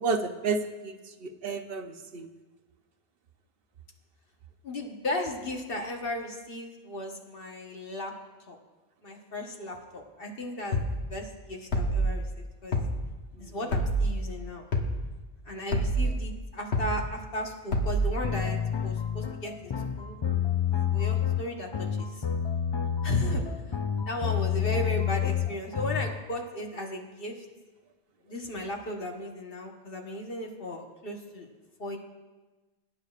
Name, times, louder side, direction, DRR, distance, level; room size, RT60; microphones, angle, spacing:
voice 1, 0.0-2.3 13.4-13.6 23.2-23.3, right 4 dB, 70° right, 7 dB, 0.9 m, -32 dB
voice 2, 4.6-8.1 8.5-8.6 9.0-10.8 11.1-12.8 13.4-14.7 15.4-18.6 18.8-20.2 20.7-22.2 23.0-23.4 24.1-27.4 28.2-31.5 31.8-32.0, left 1 dB, 60° left, 1 dB, 1.5 m, -35 dB
sound 1, 10.7-11.0 11.7-12.1 12.7-13.0 13.7-14.1 14.7-15.0 15.7-16.1 16.7-17.0 17.7-18.1, right 1 dB, 80° left, 1.5 m, -26 dB
sound 2, 18.2-26.1, left 9 dB, 45° left, 0.4 m, -29 dB
21.5 x 9.6 x 2.5 m, 1.2 s
omnidirectional pair, 1.1 m